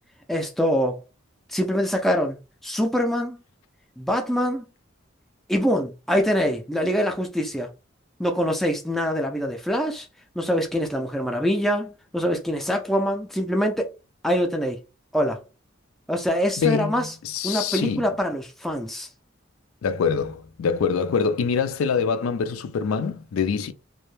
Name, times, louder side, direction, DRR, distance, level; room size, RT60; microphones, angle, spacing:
voice 1, 0.3-1.0 1.5-2.4 2.6-3.4 4.0-4.6 5.5-7.7 8.2-10.1 10.4-13.9 14.2-14.8 15.1-15.4 16.1-17.1 17.4-19.1, equal, ahead, 0.3 m, -24 dB
voice 2, 16.6-18.1 19.8-23.7, left 6 dB, 85° left, 0.4 m, -25 dB
2.1 x 2.0 x 3.0 m
head